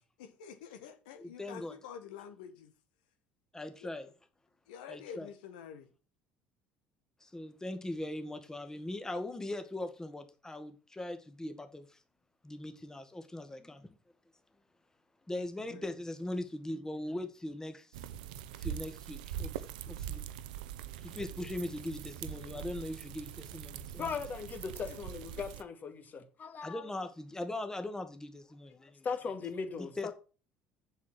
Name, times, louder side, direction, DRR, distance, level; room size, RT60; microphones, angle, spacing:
voice 1, 0.2-2.7 3.8-3.9 4.7-5.9 15.3-15.9 21.1-21.5 24.9-25.0, left 7 dB, 75° left, 1.6 m, -48 dB
voice 2, 1.2-1.8 3.5-4.1 4.9-5.3 7.2-12.0 12.4-14.0 15.3-18.0 18.6-20.2 21.0-24.2 26.6-29.1 29.8-30.1, left 1 dB, 10° left, 1.8 m, -40 dB
sound 1, 17.9-25.6, right 10 dB, 80° right, 0.7 m, -43 dB
voice 3, 23.9-26.9 28.8-30.1, left 5 dB, 40° left, 2.3 m, -39 dB
7.3 x 6.6 x 7.5 m
hypercardioid pair, 65°, 5 cm